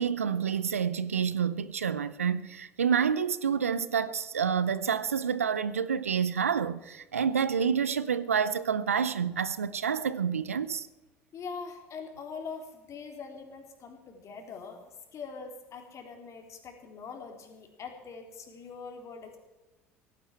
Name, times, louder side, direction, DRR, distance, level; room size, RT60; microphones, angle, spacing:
voice 1, 0.0-10.9, right 7 dB, 85° right, 0.6 m, -28 dB
voice 2, 11.3-14.8 15.1-19.4, left 5 dB, 45° left, 3.5 m, -43 dB
17.0 x 15.5 x 4.5 m
figure-of-eight pair, 65°, 7 cm